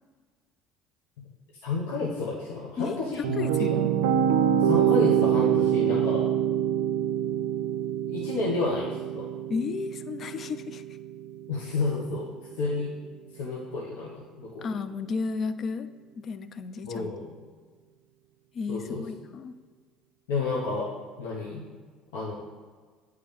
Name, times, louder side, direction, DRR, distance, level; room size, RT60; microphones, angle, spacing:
voice 1, 1.6-3.5 4.6-6.2 8.1-8.9 9.1-9.2 11.5-12.3 12.6-12.9 13.3-14.7 16.8-17.3 18.7-19.0 20.3-20.9 21.2-21.6 22.1-22.3, left 3 dB, 80° left, -5 dB, 1.0 m, -30 dB
voice 2, 2.8-3.9 9.5-10.8 14.6-15.9 16.2-17.1 18.5-19.6, left 5 dB, 45° left, 13 dB, 0.4 m, -33 dB
sound 1, 2.9-12.0, right 9 dB, 80° right, 0.4 m, -26 dB
8.6 x 3.3 x 3.6 m, 1.5 s
hypercardioid pair, 75°, 0 cm